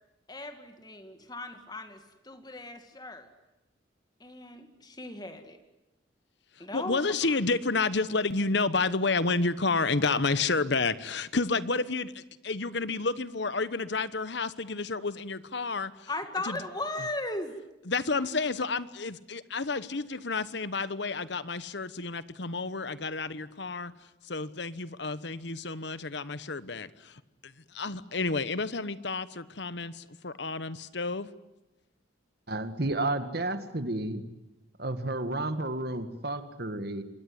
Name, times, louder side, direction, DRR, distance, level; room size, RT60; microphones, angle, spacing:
voice 1, 0.3-3.3 4.2-5.6 6.6-7.0 16.1-17.5, left 2 dB, 20° left, 8 dB, 2.1 m, -37 dB
voice 2, 6.7-16.1 16.4-16.6 17.9-23.9 24.2-31.3, left 3 dB, 65° left, 16 dB, 1.1 m, -30 dB
voice 3, 32.5-34.2 34.8-37.0, right 2 dB, 55° right, 10 dB, 1.9 m, -31 dB
26.5 x 21.5 x 9.6 m, 0.98 s
head